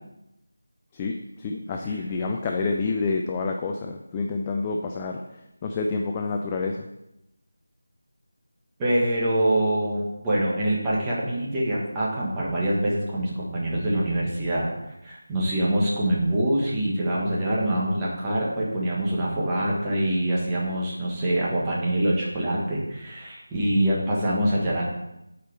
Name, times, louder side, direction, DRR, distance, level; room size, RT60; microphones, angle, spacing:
voice 1, 0.9-5.2 5.6-6.8, left 4 dB, 15° left, 2 dB, 0.3 m, -28 dB
voice 2, 8.8-14.7 15.0-24.9, right 1 dB, 10° right, -6 dB, 1.3 m, -25 dB
8.3 x 4.6 x 4.6 m, 0.87 s
figure-of-eight pair, 175°, 0 cm